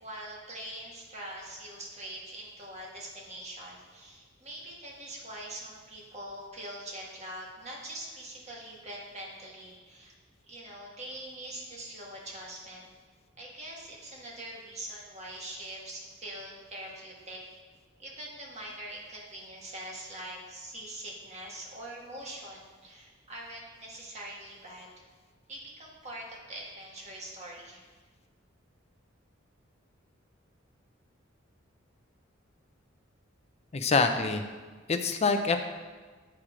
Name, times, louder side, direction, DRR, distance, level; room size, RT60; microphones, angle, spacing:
voice 1, 0.0-10.1 10.5-12.9 13.4-17.4 18.0-24.9 25.5-27.8, right 1 dB, 35° right, -3 dB, 1.6 m, -43 dB
voice 2, 33.7-34.4 34.9-35.6, left 4 dB, 35° left, 7 dB, 0.6 m, -25 dB
8.7 x 4.7 x 5.0 m, 1.4 s
head